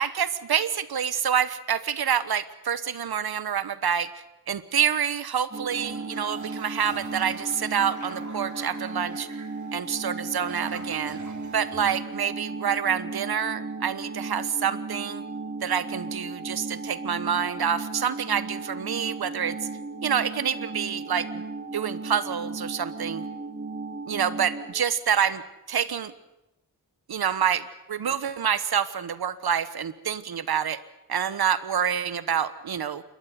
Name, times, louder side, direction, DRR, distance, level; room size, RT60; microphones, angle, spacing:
voice 1, 0.0-9.3 9.7-11.2 11.5-15.2 15.6-19.6 20.0-21.4 21.7-23.3 24.1-25.4 25.7-26.1 27.1-30.8 31.1-33.0, right 8 dB, 90° right, 15 dB, 1.3 m, -27 dB
sound 1, 5.5-24.7, right 3 dB, 35° right, 3.0 m, -36 dB
Toilet flush, 5.7-12.6, right 3 dB, 50° right, 3.5 m, -46 dB
28.5 x 13.0 x 9.4 m, 0.94 s
wide cardioid pair, 80°, 36 cm